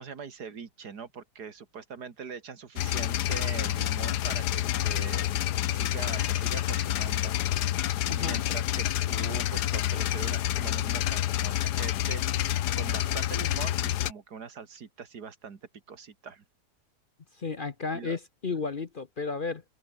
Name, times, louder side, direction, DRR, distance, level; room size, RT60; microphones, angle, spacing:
voice 1, 0.0-5.3 5.7-15.6 15.9-16.4 17.9-18.2, right 6 dB, 80° right, 2.6 m, -42 dB
sound 1, 2.8-14.1, left 13 dB, 85° left, 1.3 m, -28 dB
voice 2, 8.1-8.4 17.3-19.6, left 4 dB, 40° left, 1.0 m, -33 dB
open air
omnidirectional pair, 1.7 m